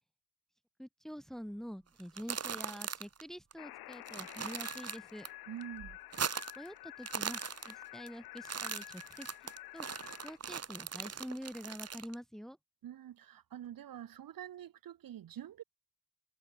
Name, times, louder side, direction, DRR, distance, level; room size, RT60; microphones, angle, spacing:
voice 1, 0.8-5.3 6.6-7.4 7.7-9.3 9.7-9.9 10.2-12.6, equal, ahead, 1.9 m, -46 dB
sound 1, 2.0-3.2 3.5-3.6 3.9-5.3 5.6-6.7 7.0-8.1 8.4-12.1, right 6 dB, 45° right, 3.1 m, -40 dB
sound 2, 3.6-10.4, left 17 dB, 85° left, 2.5 m, -50 dB
voice 2, 5.5-6.0 12.8-15.6, right 11 dB, 65° right, 3.3 m, -46 dB
cardioid pair, 75°, 36 cm